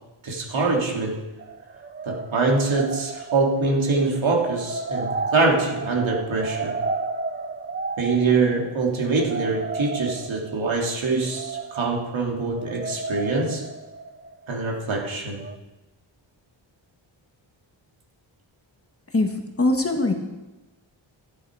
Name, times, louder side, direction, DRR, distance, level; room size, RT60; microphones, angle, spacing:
voice 1, 0.2-1.2 2.0-6.7 8.0-13.6 14.5-15.4, right 3 dB, 75° right, -1 dB, 3.3 m, -24 dB
sound 1, 1.4-15.0 15.4-15.6, right 3 dB, 25° right, 0.6 m, -33 dB
voice 2, 19.1-20.1, left 2 dB, 30° left, 4 dB, 1.6 m, -22 dB
13.5 x 11.5 x 4.9 m, 1.1 s
wide cardioid pair, 125°, 47 cm